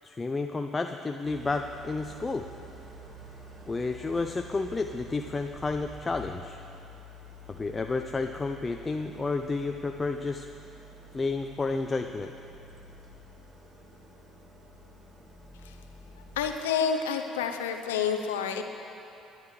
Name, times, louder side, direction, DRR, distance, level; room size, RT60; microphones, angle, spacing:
voice 1, 0.0-2.5 3.7-6.6 7.5-10.5 11.1-12.3, left 3 dB, 25° left, 5 dB, 0.5 m, -31 dB
Idling, 1.2-16.5, right 1 dB, 35° right, 2.4 m, -48 dB
voice 2, 16.4-18.6, left 7 dB, 90° left, 6 dB, 0.7 m, -29 dB
20.5 x 10.5 x 3.3 m, 2.8 s
hypercardioid pair, 60°, 0 cm